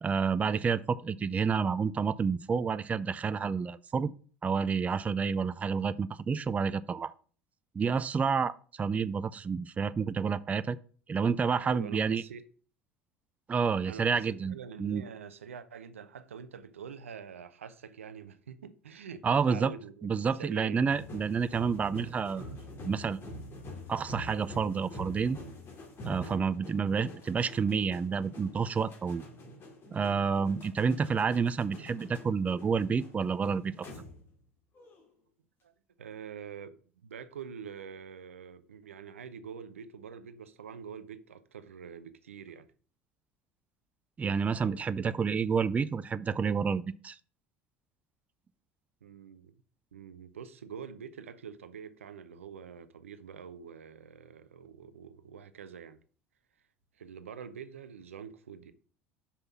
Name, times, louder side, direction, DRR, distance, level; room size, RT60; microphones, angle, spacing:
voice 1, 0.0-4.1 4.4-7.1 7.7-10.8 11.1-12.2 13.5-15.0 19.2-19.7 20.0-22.5 22.8-23.2 23.9-25.4 26.0-29.2 29.9-33.9 44.2-47.2, right 5 dB, 20° right, 0.4 m, -29 dB
voice 2, 11.6-12.4 13.9-20.1 20.3-20.9 26.2-26.5 35.6-35.7 36.0-42.7 49.0-49.5 49.9-56.0 57.0-58.7, right 7 dB, 75° right, 0.6 m, -45 dB
sound 1, 20.9-34.4 34.7-35.1, left 1 dB, 35° left, 2.3 m, -46 dB
5.7 x 5.4 x 6.0 m
figure-of-eight pair, 65°, 7 cm